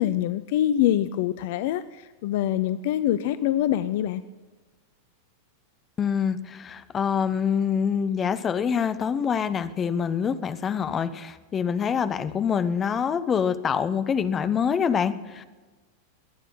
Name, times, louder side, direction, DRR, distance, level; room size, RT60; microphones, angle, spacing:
voice 1, 0.0-4.2, left 12 dB, 50° left, 14 dB, 0.5 m, -25 dB
voice 2, 6.0-15.4, left 7 dB, 25° left, 13 dB, 0.8 m, -25 dB
22.0 x 9.3 x 5.5 m, 1.3 s
figure-of-eight pair, 90°, 0 cm